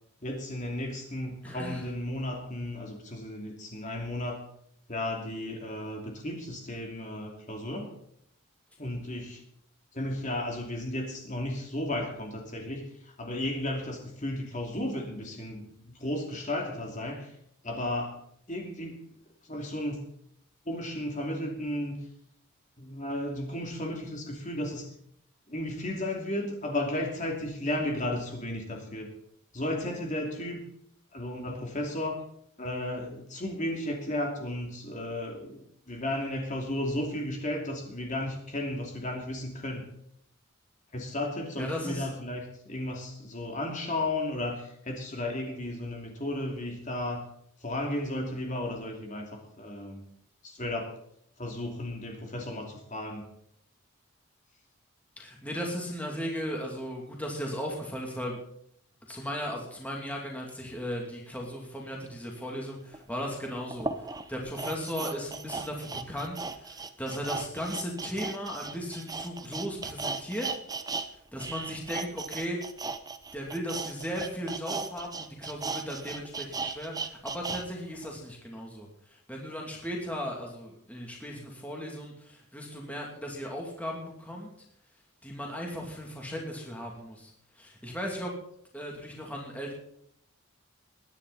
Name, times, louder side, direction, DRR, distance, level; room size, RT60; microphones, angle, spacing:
voice 1, 0.2-4.4 4.9-7.9 8.8-9.4 9.9-15.7 16.0-17.3 17.6-18.1 18.5-19.0 19.4-20.1 20.7-22.0 22.8-24.9 25.5-29.1 29.5-30.7 31.1-32.2 32.6-39.9 40.9-47.3 47.6-50.0 50.4-50.9 51.4-53.2, left 1 dB, 35° left, 1 dB, 2.7 m, -34 dB
voice 2, 1.4-1.8 41.6-42.1 55.2-58.4 59.1-70.5 71.1-72.6 73.3-84.5 85.2-88.3 88.7-89.7, equal, 5° left, -1 dB, 2.7 m, -36 dB
sound 1, 62.9-63.0 63.7-71.1 71.3-77.6 78.0-78.1, right 4 dB, 15° right, 0.7 m, -36 dB
21.5 x 10.5 x 4.2 m, 0.70 s
head